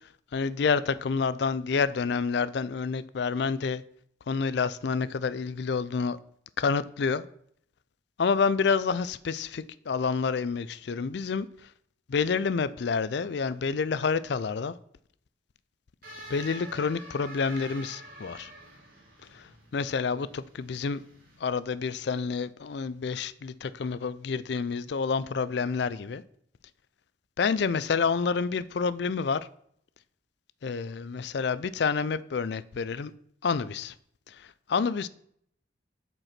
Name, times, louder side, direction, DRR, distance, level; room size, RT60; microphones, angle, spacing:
voice 1, 0.3-3.8 4.3-6.2 6.6-7.2 8.2-11.5 12.1-14.7 16.3-18.5 19.3-21.0 21.4-26.2 27.4-29.5 30.6-33.1 33.4-33.9 34.3-35.1, left 5 dB, 60° left, 0.4 m, -28 dB
sound 1, 16.0-21.4, right 1 dB, 50° right, 2.5 m, -47 dB
7.8 x 4.6 x 5.8 m
head